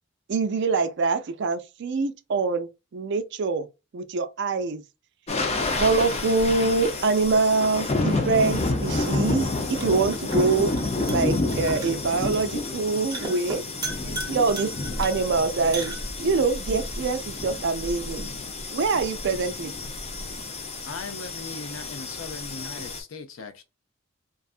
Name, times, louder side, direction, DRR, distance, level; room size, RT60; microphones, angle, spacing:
voice 1, 0.3-3.7 3.9-4.8 5.7-10.7 11.1-13.6 14.0-14.7 15.0-18.3 18.7-19.7, right 4 dB, 60° right, 0.4 m, -25 dB
sound 1, 5.3-23.0, left 2 dB, 30° left, 0.5 m, -29 dB
sound 2, 8.5-16.5, right 2 dB, 20° right, 0.9 m, -39 dB
voice 2, 20.8-23.6, left 4 dB, 75° left, 0.6 m, -38 dB
2.6 x 2.4 x 2.4 m
head